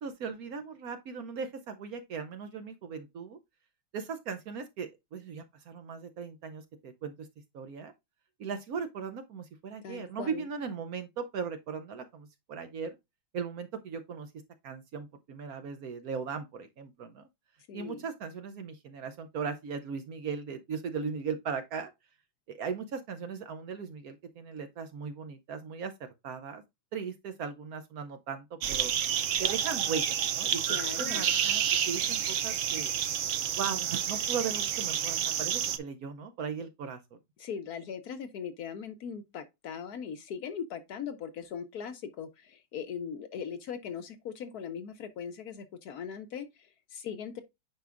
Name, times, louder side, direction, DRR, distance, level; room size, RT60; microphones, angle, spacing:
voice 1, 0.0-3.4 3.9-7.3 7.5-7.9 8.4-13.0 13.3-14.3 14.6-17.2 17.7-21.9 22.5-25.9 26.2-26.6 26.9-28.9 29.4-30.6 31.0-32.9 33.6-37.0, right 6 dB, 65° right, 1.0 m, -38 dB
voice 2, 9.8-10.5 17.7-18.0 30.7-31.3 37.4-47.4, left 7 dB, 65° left, 1.1 m, -40 dB
sound 1, 28.6-35.8, right 9 dB, 90° right, 0.6 m, -29 dB
9.2 x 4.7 x 2.4 m
omnidirectional pair, 2.0 m